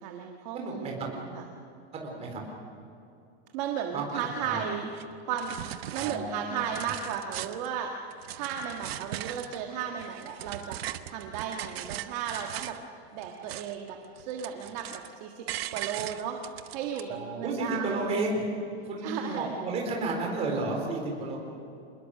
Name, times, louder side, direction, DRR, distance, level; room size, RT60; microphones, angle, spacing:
voice 1, 0.0-1.5 3.5-4.9 5.3-5.5 5.9-7.9 8.3-10.8 11.1-12.8 13.1-15.5 15.7-16.4 16.7-18.0 18.8-19.6, right 8 dB, 40° right, 2 dB, 1.6 m, -35 dB
voice 2, 0.5-0.9 1.9-2.4 3.9-4.7 5.9-6.5 17.1-18.4 18.8-21.4, right 2 dB, 20° right, 0 dB, 4.2 m, -32 dB
sound 1, 4.9-5.0 5.4-6.2 6.6-7.7 8.1-9.6 10.0-12.8 13.2-13.9 14.2-15.1 15.5-17.0, right 13 dB, 65° right, 1.1 m, -39 dB
27.0 x 20.5 x 6.6 m, 2.7 s
supercardioid pair, 170°, 33 cm